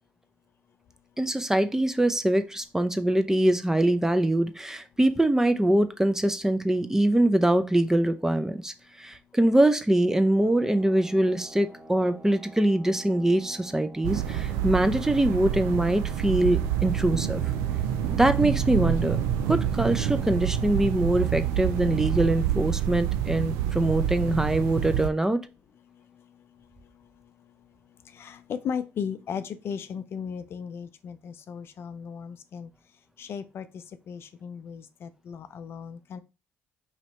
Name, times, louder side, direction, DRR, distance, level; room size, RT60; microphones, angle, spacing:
voice 1, 1.2-17.4 18.1-19.2 19.5-25.5, right 1 dB, 10° right, 10 dB, 0.5 m, -23 dB
sound 1, 10.4-22.3, right 1 dB, 35° right, 0.9 m, -48 dB
sound 2, 14.0-25.1, right 10 dB, 90° right, 0.3 m, -27 dB
voice 2, 28.1-32.7 33.2-36.2, left 7 dB, 60° left, 12 dB, 0.4 m, -36 dB
3.2 x 2.8 x 4.1 m, 0.28 s
supercardioid pair, 65°, 5 cm